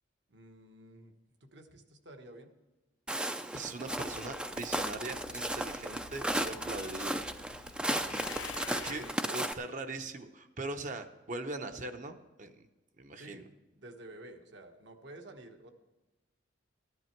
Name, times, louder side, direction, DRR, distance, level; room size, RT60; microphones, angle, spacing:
voice 1, 0.3-2.5 7.9-8.2 8.6-9.1 13.1-13.5 13.7-15.7, right 1 dB, 65° right, 5 dB, 1.3 m, -51 dB
Walk footsteps, 3.1-9.5, right 1 dB, 5° right, 0.4 m, -35 dB
voice 2, 3.5-7.3 7.6-7.8 8.8-12.5 13.0-13.4, right 2 dB, 40° right, 7 dB, 0.8 m, -41 dB
sound 1, 3.9-9.1, left 8 dB, 90° left, 0.4 m, -49 dB
14.5 x 10.5 x 4.5 m, 1.2 s
head